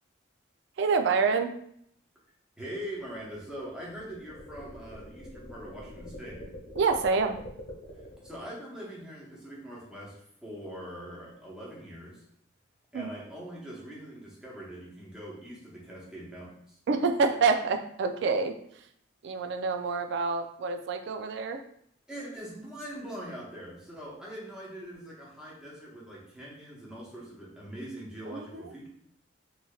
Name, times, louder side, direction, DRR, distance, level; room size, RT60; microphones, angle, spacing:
voice 1, 0.8-1.5 6.8-7.4 12.9-13.1 16.9-18.6 19.2-21.6 28.3-28.7, right 4 dB, 60° right, 7 dB, 0.3 m, -27 dB
voice 2, 2.6-6.4 8.2-10.1 10.4-12.2 12.9-16.8 22.1-28.9, equal, 5° right, -6 dB, 0.8 m, -42 dB
sound 1, 3.0-8.4, left 1 dB, 55° left, 1.2 m, -45 dB
3.1 x 2.7 x 2.3 m, 0.68 s
head